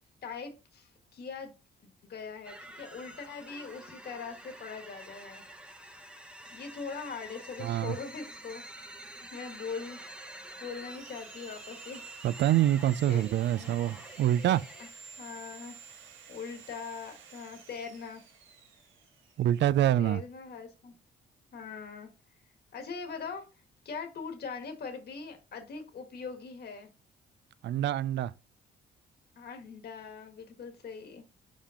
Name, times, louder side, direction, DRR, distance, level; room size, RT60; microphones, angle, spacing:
voice 1, 0.2-1.6 1.8-5.4 6.5-8.6 9.2-10.0 10.6-12.1 13.0-13.8 14.8-14.9 15.2-15.8 16.3-18.2 20.0-20.9 21.5-22.1 22.7-23.4 23.8-26.9 29.3-31.2, left 5 dB, 55° left, 1.4 m, -41 dB
sound 1, 2.4-14.9, right 1 dB, 5° right, 0.9 m, -48 dB
voice 2, 7.6-8.0 12.2-14.6 19.4-20.2 27.6-28.3, right 12 dB, 65° right, 0.4 m, -26 dB
Sawing, 9.9-19.8, right 5 dB, 80° right, 1.4 m, -52 dB
5.2 x 5.1 x 3.7 m
cardioid pair, 90°, 20 cm